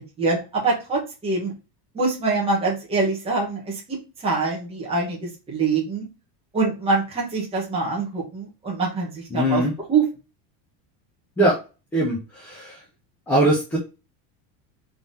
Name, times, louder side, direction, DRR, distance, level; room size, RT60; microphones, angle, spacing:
voice 1, 0.2-1.5 1.9-6.0 6.5-9.6 9.9-10.0, right 4 dB, 10° right, -3 dB, 1.2 m, -24 dB
voice 2, 9.3-9.7 11.4-11.5 11.9-12.8 13.3-13.8, right 1 dB, 5° left, -4 dB, 0.4 m, -21 dB
3.7 x 3.3 x 4.0 m, 0.30 s
cardioid pair, 180°, 49 cm